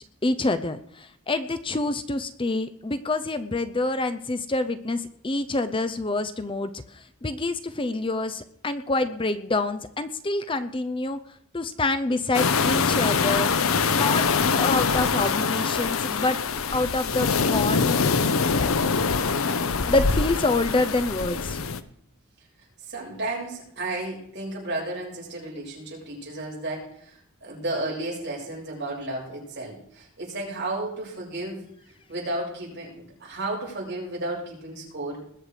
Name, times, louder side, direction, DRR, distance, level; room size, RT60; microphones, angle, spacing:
voice 1, 0.2-11.2 11.5-13.5 13.9-14.2 14.6-16.4 16.7-18.0 19.9-21.6, left 2 dB, 25° left, 11 dB, 0.6 m, -27 dB
sound 1, 12.3-21.8, left 5 dB, 80° left, 0.8 m, -24 dB
voice 2, 22.8-35.2, right 2 dB, 55° right, -4 dB, 7.4 m, -33 dB
20.5 x 8.0 x 5.0 m, 0.67 s
head